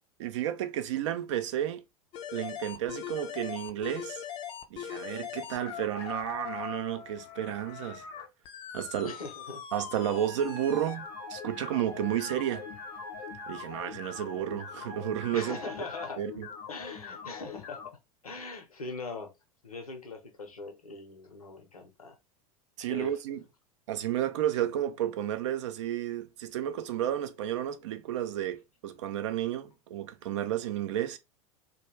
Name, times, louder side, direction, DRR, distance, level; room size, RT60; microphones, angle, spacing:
voice 1, 0.2-1.8 2.3-4.2 4.7-8.0 8.7-9.1 9.7-12.7 13.5-15.6 16.2-16.5 22.8-23.4 23.9-31.2, right 11 dB, 55° right, 0.4 m, -32 dB
sound 1, 2.1-17.9, left 9 dB, 30° left, 0.4 m, -42 dB
voice 2, 9.0-9.7 15.3-16.2 16.7-19.3 19.6-22.2 22.9-23.2, left 3 dB, 80° left, 0.7 m, -41 dB
sound 2, 10.0-16.1, right 2 dB, 5° right, 0.7 m, -47 dB
2.3 x 2.2 x 3.1 m
figure-of-eight pair, 85°, 19 cm